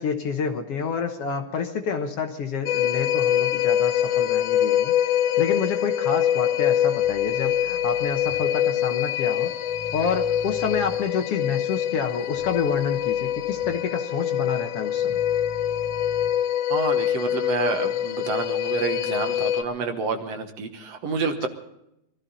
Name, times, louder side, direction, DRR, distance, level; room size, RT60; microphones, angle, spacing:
voice 1, 0.0-9.5 9.9-15.2, left 6 dB, 60° left, 5 dB, 1.8 m, -28 dB
sound 1, 2.7-19.6, left 11 dB, 85° left, 2.2 m, -24 dB
sound 2, 7.0-8.3 9.6-11.0 12.3-13.6 15.0-16.3, right 4 dB, 90° right, 2.7 m, -43 dB
voice 2, 16.7-21.5, right 4 dB, 60° right, 6 dB, 2.1 m, -28 dB
23.0 x 14.0 x 4.0 m, 0.83 s
omnidirectional pair, 3.5 m